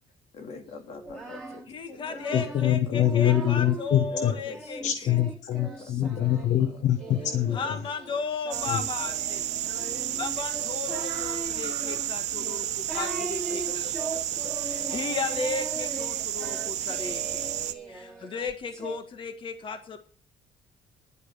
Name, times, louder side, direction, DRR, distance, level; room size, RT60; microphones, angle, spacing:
voice 1, 0.3-3.2 4.1-4.9 5.8-6.8 7.5-7.7 8.1-8.2 9.7-11.3 13.5-15.2, left 3 dB, 60° left, 5 dB, 2.6 m, -46 dB
Singing, 0.9-3.9 4.5-19.0, right 2 dB, 5° left, 2.6 m, -40 dB
voice 2, 1.7-5.1 7.5-9.5 10.2-13.9 14.6-17.4 17.9-20.0, left 4 dB, 45° left, 8 dB, 1.7 m, -35 dB
voice 3, 2.3-4.3 4.8-7.6 8.7-8.8, left 11 dB, 85° left, 9 dB, 1.0 m, -24 dB
sound 1, 8.5-17.7, right 12 dB, 70° right, 1.0 m, -31 dB
10.5 x 8.4 x 7.2 m, 0.43 s
cardioid pair, 130°, 12 cm